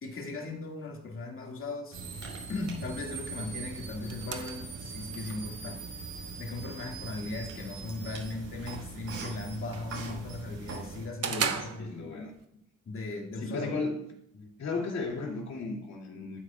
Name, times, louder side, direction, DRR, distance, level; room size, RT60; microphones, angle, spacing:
voice 1, 0.0-2.0 2.5-5.8 6.4-12.0 12.9-13.8 14.3-14.5, left 3 dB, 45° left, 1 dB, 2.1 m, -38 dB
sound 1, 1.9-11.1, right 4 dB, 70° right, 4.3 m, -41 dB
sound 2, 3.5-12.5, right 7 dB, 55° right, 1.2 m, -41 dB
voice 2, 11.3-12.3 13.4-14.0 14.6-16.4, left 3 dB, 60° left, -1 dB, 2.6 m, -35 dB
12.5 x 9.3 x 2.4 m, 0.73 s
cardioid pair, 90°, 30 cm